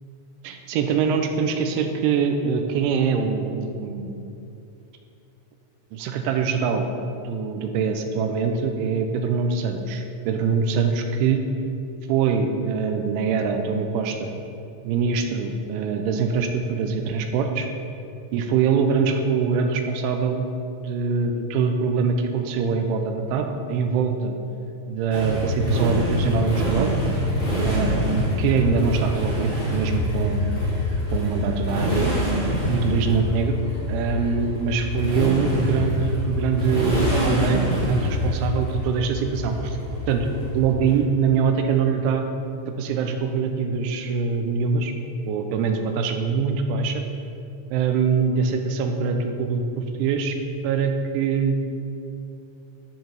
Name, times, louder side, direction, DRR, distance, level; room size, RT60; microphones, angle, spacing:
voice 1, 0.4-4.1 5.9-6.9 7.2-11.4 12.1-14.3 14.8-17.7 18.3-20.4 20.8-24.3 24.9-26.9 27.6-30.4 31.1-32.1 32.7-33.6 33.9-39.8 40.1-40.3 40.5-42.3 42.7-44.9 45.3-47.0 47.7-50.4 50.6-51.6, right 5 dB, 90° right, 5 dB, 3.1 m, -23 dB
Motorcycle, 25.1-40.9, equal, 35° left, 3.2 m, -25 dB
15.0 x 6.8 x 4.1 m, 2.7 s
omnidirectional pair, 5.4 m